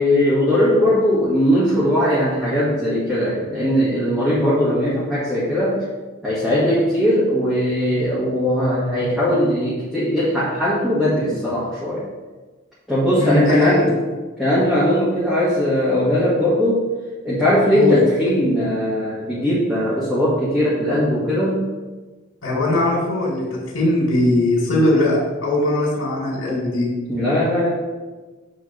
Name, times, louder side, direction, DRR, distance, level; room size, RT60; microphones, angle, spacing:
voice 1, 0.0-5.9 6.2-12.0 12.9-14.0 14.4-16.9 17.2-21.7 27.1-27.7, equal, ahead, -10 dB, 1.4 m, -19 dB
voice 2, 13.2-13.8 17.7-18.0 22.4-26.9, left 1 dB, 75° left, -5 dB, 2.3 m, -19 dB
7.3 x 3.4 x 6.3 m, 1.3 s
head